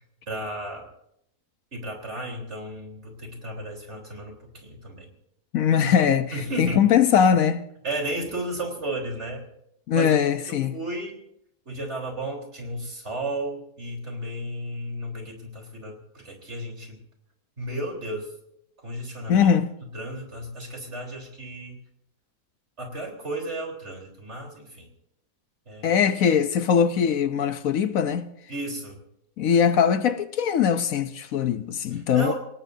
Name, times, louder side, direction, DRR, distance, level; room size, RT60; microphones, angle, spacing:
voice 1, 0.3-0.9 1.7-5.1 6.3-6.9 7.8-9.4 9.9-10.1 10.5-11.2 11.7-17.0 17.6-18.3 18.8-19.5 19.9-21.8 22.8-24.9 25.7-26.0 28.5-29.0 31.9-32.3, right 1 dB, 50° right, 4.1 m, -33 dB
voice 2, 5.5-7.7 9.9-10.8 19.3-19.7 25.8-28.3 29.4-32.3, left 7 dB, 70° left, 1.2 m, -21 dB
28.0 x 17.5 x 2.7 m
omnidirectional pair, 1.5 m